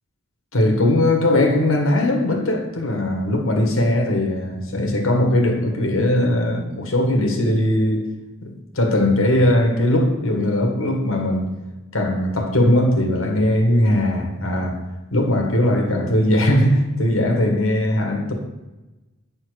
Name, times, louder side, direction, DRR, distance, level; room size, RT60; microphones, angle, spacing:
voice 1, 0.5-8.0 8.4-11.5 11.9-14.8 15.1-18.3, left 1 dB, 75° left, 1.8 m, -19 dB
9.4 x 4.4 x 6.5 m
head